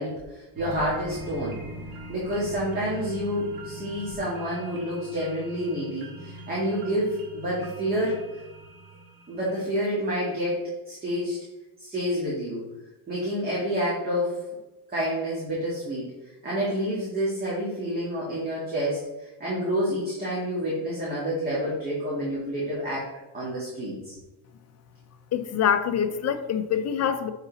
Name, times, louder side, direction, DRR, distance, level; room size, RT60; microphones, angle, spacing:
voice 1, 0.0-1.6 2.1-8.2 9.3-11.4 11.8-12.6 13.1-14.4 14.9-16.1 16.4-23.1 23.3-24.2, equal, 20° right, -7 dB, 2.1 m, -28 dB
sound 1, 0.6-9.9 10.3-10.4, right 1 dB, 65° right, 1.8 m, -41 dB
voice 2, 25.3-27.3, left 8 dB, 40° left, 10 dB, 0.6 m, -25 dB
9.8 x 4.1 x 4.0 m, 1.0 s
cardioid pair, 150°, 41 cm